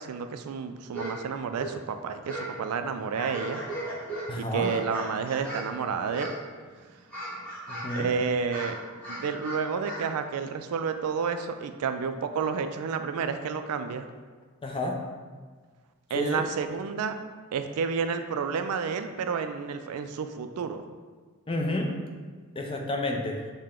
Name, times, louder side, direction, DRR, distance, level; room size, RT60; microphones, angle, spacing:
voice 1, 0.0-3.6 4.4-6.3 8.0-8.8 9.1-14.1 16.1-17.2 17.5-20.8, right 6 dB, 85° right, 8 dB, 0.3 m, -30 dB
sound 1, 0.9-1.2 1.4-2.6 2.9-5.7 6.1-6.6 6.9-8.1 8.4-10.1, right 1 dB, 5° left, 1.2 m, -37 dB
voice 2, 4.3-4.7 7.7-8.1 14.6-15.0 16.1-16.4 21.5-21.9 22.6-23.4, left 1 dB, 25° left, 1 dB, 0.5 m, -30 dB
6.5 x 2.2 x 3.6 m, 1.5 s
head